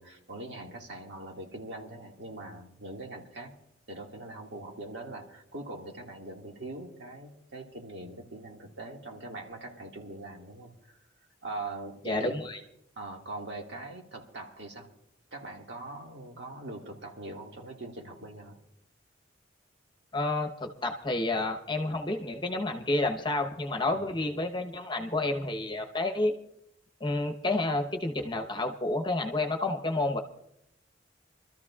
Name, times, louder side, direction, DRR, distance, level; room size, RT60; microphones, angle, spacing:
voice 1, 0.0-3.6 3.9-11.0 11.4-12.5 13.0-14.9 15.3-18.6 23.9-24.1, right 2 dB, 65° right, 0 dB, 2.1 m, -42 dB
voice 2, 12.0-12.6 20.1-26.3 27.0-30.2, left 2 dB, 25° left, 4 dB, 1.0 m, -30 dB
26.5 x 13.5 x 2.4 m, 0.79 s
head